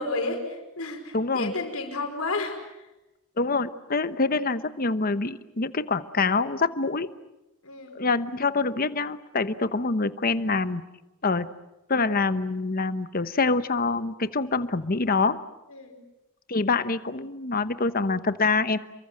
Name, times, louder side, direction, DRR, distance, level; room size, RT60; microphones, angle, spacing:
voice 1, 0.0-2.9 7.6-8.1 15.7-16.0, left 2 dB, 80° left, 4 dB, 5.2 m, -32 dB
voice 2, 1.1-1.5 3.4-7.1 7.9-10.8 11.2-11.5 11.9-15.4 16.5-18.8, left 3 dB, 40° left, 12 dB, 1.0 m, -25 dB
28.5 x 24.0 x 7.7 m, 0.97 s
head